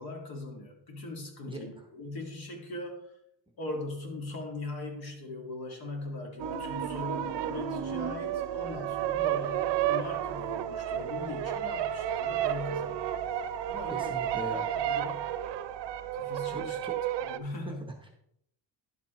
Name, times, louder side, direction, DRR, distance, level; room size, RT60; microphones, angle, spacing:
voice 1, 0.0-3.2 3.6-14.2 14.5-15.3 16.1-16.8 17.2-17.9, left 2 dB, 55° left, 2 dB, 2.0 m, -40 dB
sound 1, 6.4-17.4, right 10 dB, 65° right, 0.7 m, -32 dB
voice 2, 13.9-14.7 16.5-16.9 18.0-18.1, right 2 dB, 10° right, 1 dB, 0.8 m, -39 dB
10.5 x 7.4 x 3.0 m, 0.73 s
cardioid pair, 170°, 44 cm